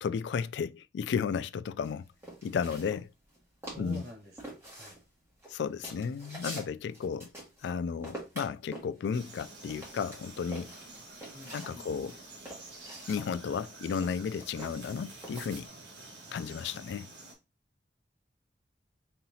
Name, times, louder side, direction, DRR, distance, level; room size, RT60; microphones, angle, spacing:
voice 1, 0.0-2.0 2.4-3.1 3.8-4.0 5.5-7.3 7.6-10.7 11.5-12.2 13.1-15.7 16.3-17.1, left 6 dB, 75° left, 0.3 m, -33 dB
sound 1, 1.8-3.4 3.6-4.1 4.4-7.7 8.0-11.7 12.1-15.7, right 1 dB, 15° right, 1.6 m, -46 dB
voice 2, 3.6-5.0 11.3-12.1, equal, 65° right, 2.4 m, -47 dB
Frog, 9.1-17.3, right 2 dB, 80° right, 2.2 m, -49 dB
5.4 x 2.8 x 2.8 m
head